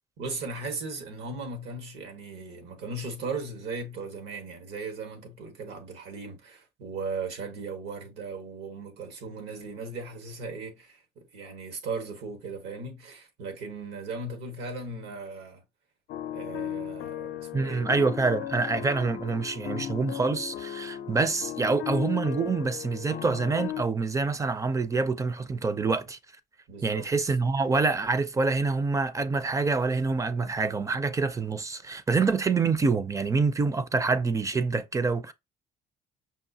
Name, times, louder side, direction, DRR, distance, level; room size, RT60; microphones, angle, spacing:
voice 1, 0.2-15.6 16.3-17.9 26.7-27.1, right 3 dB, 85° right, 1.4 m, -37 dB
sound 1, 16.1-23.8, left 11 dB, 85° left, 0.5 m, -36 dB
voice 2, 17.5-26.2 26.8-35.3, right 4 dB, 20° right, 0.4 m, -26 dB
5.6 x 2.5 x 2.7 m
cardioid pair, 110°, 17 cm